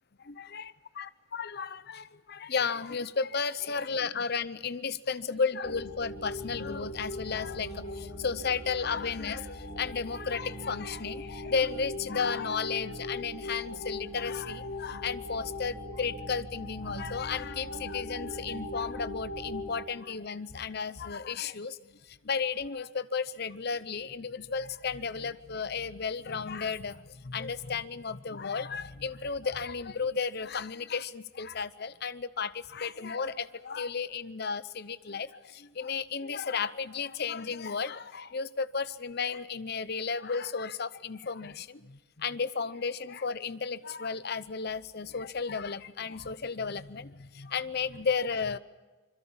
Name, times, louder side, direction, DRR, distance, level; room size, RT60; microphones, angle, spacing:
voice 1, 0.2-48.6, left 5 dB, 50° left, 15 dB, 0.7 m, -34 dB
sound 1, 5.6-19.7, left 1 dB, 30° left, 7.6 m, -40 dB
26.0 x 22.0 x 7.2 m, 1.3 s
head